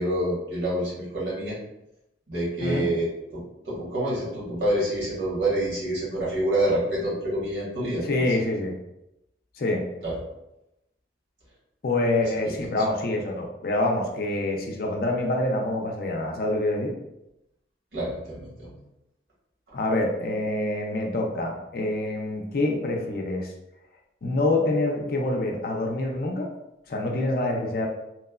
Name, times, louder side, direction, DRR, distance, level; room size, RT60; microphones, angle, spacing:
voice 1, 0.0-1.6 2.3-8.0 10.0-10.1 12.5-12.6 17.9-18.7, right 1 dB, 75° right, -7 dB, 1.3 m, -27 dB
voice 2, 8.0-8.7 9.5-9.8 11.8-16.9 19.7-23.5 24.2-26.5 26.9-27.9, left 2 dB, 50° left, 1 dB, 0.4 m, -26 dB
2.9 x 2.1 x 2.3 m, 0.88 s
head